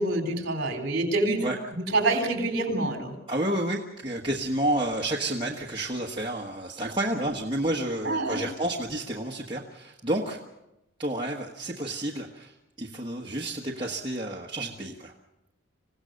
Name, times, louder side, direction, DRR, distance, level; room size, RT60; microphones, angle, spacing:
voice 1, 0.0-1.5 1.7-3.1 8.0-8.4, right 2 dB, 50° right, 5 dB, 3.8 m, -26 dB
voice 2, 3.3-10.4 11.0-15.1, right 1 dB, 25° right, -2 dB, 1.3 m, -30 dB
26.5 x 16.5 x 6.5 m, 0.92 s
head